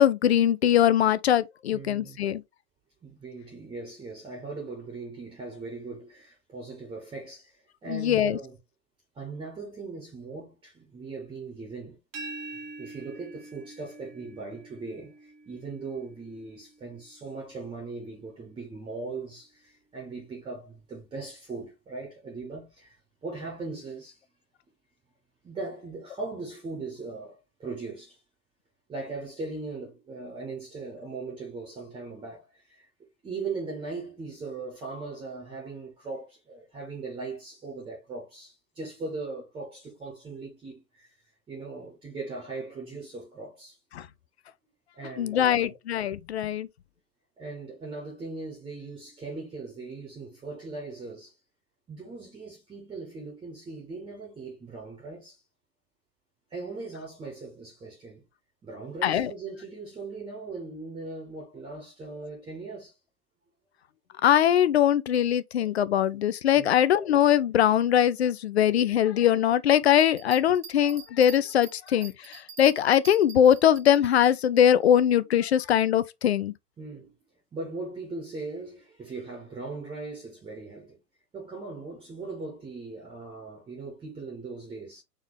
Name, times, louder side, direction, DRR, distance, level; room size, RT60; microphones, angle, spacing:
voice 1, 0.0-2.4 7.9-8.4 43.9-44.1 45.2-46.7 59.0-59.3 64.2-76.5, left 10 dB, 45° left, 0.5 m, -22 dB
voice 2, 1.7-2.2 3.0-8.6 9.1-12.0 12.5-24.2 25.4-28.2 28.9-41.1 41.5-43.8 44.9-45.7 47.4-51.4 51.9-55.4 56.5-58.2 58.6-62.9 66.5-66.7 76.8-77.1 77.5-81.0 81.3-85.0, right 3 dB, 10° right, 1.6 m, -39 dB
sound 1, 12.1-17.9, right 3 dB, 30° right, 1.6 m, -45 dB
sound 2, 69.9-74.3, right 7 dB, 70° right, 1.5 m, -46 dB
4.4 x 3.5 x 3.5 m
figure-of-eight pair, 125°, 47 cm